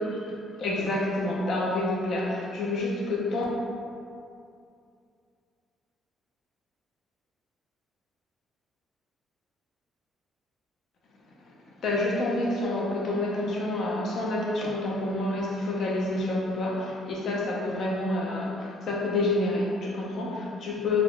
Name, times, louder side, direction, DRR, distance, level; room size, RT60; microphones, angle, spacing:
voice 1, 0.0-3.4 11.4-21.0, left 2 dB, 65° left, -3 dB, 0.5 m, -28 dB
2.4 x 2.1 x 3.5 m, 2.4 s
cardioid pair, 90°, 0 cm